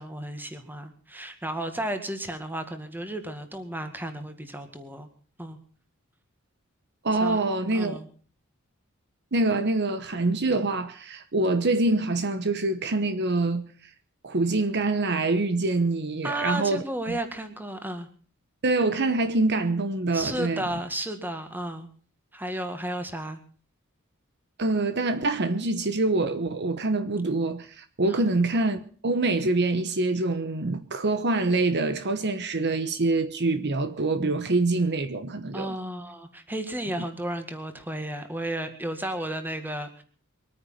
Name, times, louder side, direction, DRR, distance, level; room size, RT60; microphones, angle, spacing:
voice 1, 0.0-5.1 5.4-5.6 7.2-7.4 7.7-8.1 16.2-18.1 20.1-21.9 22.3-23.4 28.1-28.3 35.5-40.0, right 1 dB, 10° right, 1.9 m, -33 dB
voice 2, 7.0-8.0 9.3-13.7 14.2-17.2 18.6-20.6 24.6-35.7, right 2 dB, 55° right, 1.1 m, -25 dB
23.0 x 9.5 x 5.7 m
head